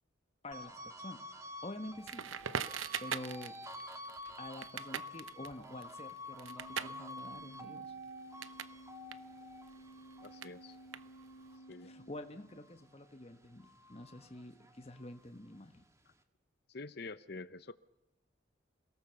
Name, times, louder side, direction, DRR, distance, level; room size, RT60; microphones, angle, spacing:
voice 1, 0.4-1.2 1.6-2.3 3.0-3.5 4.4-7.9 11.8-15.8, left 1 dB, 30° left, 7 dB, 1.3 m, -47 dB
sound 1, 0.5-13.1 13.5-15.2, left 1 dB, 15° right, 1.5 m, -49 dB
Crackle, 2.0-8.8 9.0-11.5, right 7 dB, 85° right, 0.9 m, -43 dB
Organ, 6.3-12.8, right 1 dB, 80° left, 3.3 m, -55 dB
voice 2, 10.2-10.8 11.7-11.9 16.7-17.7, left 3 dB, 55° left, 14 dB, 0.8 m, -46 dB
27.5 x 18.5 x 7.0 m, 0.91 s
head